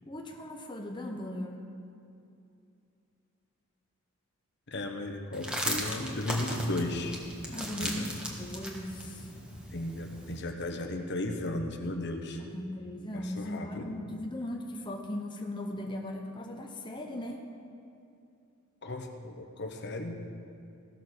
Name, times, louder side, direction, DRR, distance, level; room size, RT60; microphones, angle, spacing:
voice 1, 0.1-1.7 7.5-8.1 8.4-9.3 12.4-17.4, left 1 dB, 20° left, 2 dB, 0.8 m, -38 dB
voice 2, 4.7-7.2 7.8-8.2 9.7-12.4 13.1-14.0 18.8-20.2, left 1 dB, 55° left, 4 dB, 1.0 m, -35 dB
sound 1, 5.3-10.4, equal, 5° right, 1.5 m, -37 dB
16.5 x 6.6 x 6.6 m, 2.6 s
head